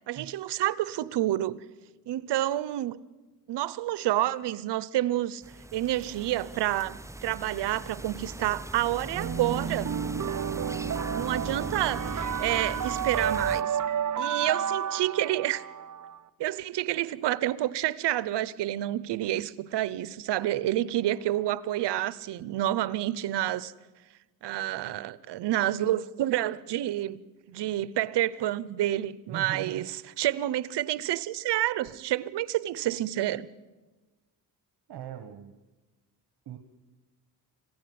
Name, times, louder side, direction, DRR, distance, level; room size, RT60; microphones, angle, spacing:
voice 1, 0.1-1.6 2.1-3.0 3.5-5.4 5.7-9.9 11.1-13.8 14.2-15.6 16.4-23.7 24.4-27.2 27.5-29.9 30.2-33.5, right 14 dB, 90° right, 0.9 m, -29 dB
sound 1, 5.4-13.6, right 1 dB, 5° right, 0.6 m, -40 dB
sound 2, 9.2-16.2, right 8 dB, 45° right, 1.0 m, -31 dB
voice 2, 29.3-29.9 34.9-35.5 36.4-36.6, right 9 dB, 75° right, 1.5 m, -40 dB
25.5 x 16.0 x 9.5 m
cardioid pair, 75°, 40 cm